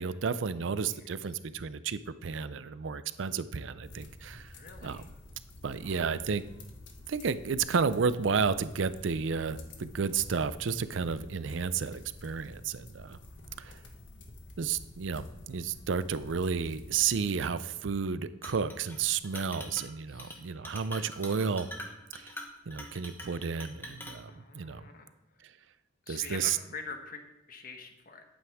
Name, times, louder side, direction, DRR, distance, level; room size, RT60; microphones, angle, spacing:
voice 1, 0.0-4.5 4.8-5.0 5.6-6.4 7.1-13.2 13.6-13.8 14.6-21.7 22.1-22.3 22.7-24.8 25.4-25.5 26.1-26.6, right 5 dB, 70° right, 14 dB, 0.5 m, -32 dB
sound 1, 3.8-17.2, left 1 dB, 65° left, 1.3 m, -50 dB
voice 2, 4.4-5.1 5.8-6.1 13.3-13.9 20.1-20.8 24.3-25.1 26.1-28.2, left 4 dB, 45° left, 5 dB, 1.2 m, -46 dB
Chink clink, 18.4-19.0 19.2-19.9 20.2-20.4 20.7-24.2, left 1 dB, 10° left, 1.2 m, -44 dB
11.0 x 8.7 x 3.6 m, 0.99 s
head